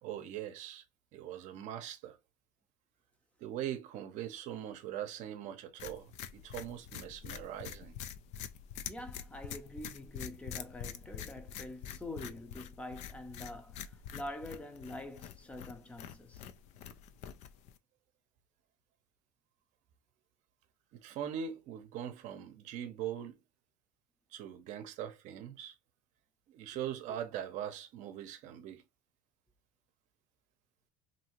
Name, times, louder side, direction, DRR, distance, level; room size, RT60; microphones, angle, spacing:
voice 1, 0.0-0.8 1.1-2.2 3.4-8.0 20.9-23.4 24.3-25.7 26.5-28.8, right 10 dB, 60° right, 0.7 m, -41 dB
sound 1, 5.8-17.8, left 9 dB, 50° left, 0.4 m, -46 dB
voice 2, 8.9-16.4, left 1 dB, 10° left, 0.6 m, -45 dB
2.7 x 2.7 x 2.9 m
supercardioid pair, 115°, 14 cm